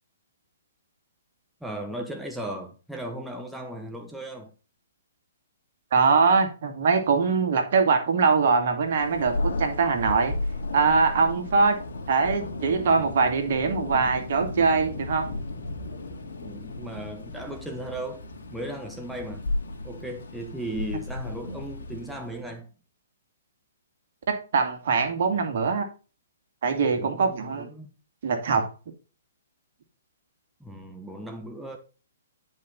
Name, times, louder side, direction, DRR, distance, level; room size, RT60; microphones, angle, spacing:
voice 1, 1.6-4.5 16.4-18.2 18.5-19.5 19.8-22.7 27.0-27.9 30.6-31.8, right 1 dB, ahead, 1.1 m, -36 dB
voice 2, 5.9-10.3 10.7-11.8 12.1-15.3 24.3-25.9 26.6-27.7 28.2-28.7, right 4 dB, 60° right, 2.3 m, -22 dB
Thunder, 8.9-22.5, left 2 dB, 60° left, 2.4 m, -34 dB
10.5 x 5.4 x 4.0 m
hypercardioid pair, 125°, 0 cm